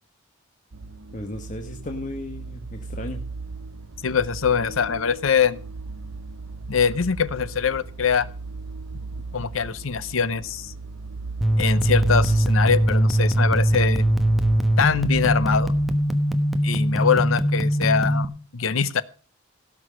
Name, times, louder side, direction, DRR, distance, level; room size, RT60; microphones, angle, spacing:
sound 1, 0.7-16.0, right 3 dB, 80° right, 0.8 m, -36 dB
voice 1, 1.1-3.2, left 1 dB, 40° left, 4 dB, 1.2 m, -35 dB
voice 2, 4.0-5.6 6.7-8.3 9.3-10.7 11.6-14.0 14.8-15.7 16.6-19.0, left 6 dB, 70° left, 17 dB, 0.7 m, -23 dB
sound 2, 11.4-18.3, right 1 dB, ahead, 1.1 m, -21 dB
17.0 x 6.3 x 6.3 m, 0.39 s
head